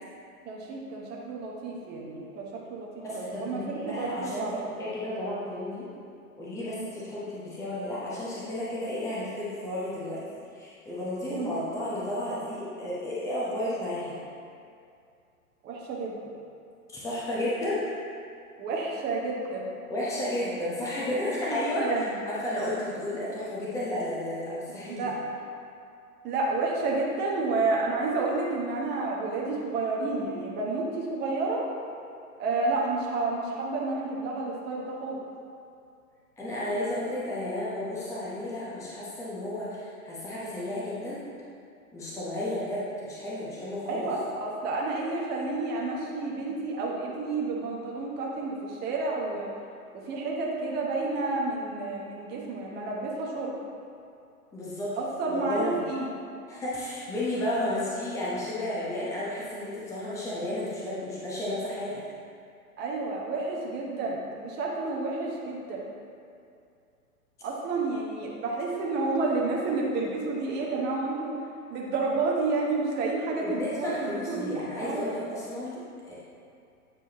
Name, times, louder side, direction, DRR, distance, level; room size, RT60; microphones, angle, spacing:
voice 1, 0.4-4.6 6.7-6.9 11.3-11.5 15.6-16.1 18.6-19.7 21.4-22.1 24.8-25.4 26.2-31.6 32.4-35.2 43.8-49.5 50.1-53.5 55.0-56.1 62.8-65.8 67.4-71.3 71.7-75.0, right 3 dB, 20° right, -2 dB, 1.0 m, -30 dB
voice 2, 3.0-5.9 6.4-10.2 10.5-14.2 16.9-17.8 19.9-22.0 22.3-25.1 36.4-41.2 41.9-44.1 54.5-55.0 55.3-55.8 56.5-62.0 73.4-76.1, left 1 dB, 5° left, -8 dB, 0.9 m, -32 dB
8.6 x 4.7 x 2.9 m, 2.5 s
figure-of-eight pair, 115°, 45 cm